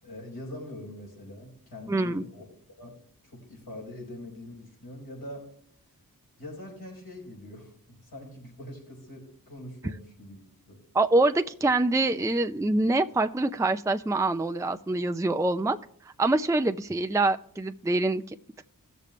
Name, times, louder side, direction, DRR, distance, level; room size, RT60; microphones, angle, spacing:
voice 1, 0.0-2.4 2.8-3.0 3.2-5.5 6.4-10.4 10.7-10.8, left 1 dB, 75° left, -2 dB, 5.0 m, -43 dB
voice 2, 1.9-2.2 10.9-15.8 16.2-18.6, right 2 dB, 10° right, 8 dB, 0.5 m, -25 dB
17.0 x 6.8 x 3.2 m, 0.62 s
wide cardioid pair, 40°, 36 cm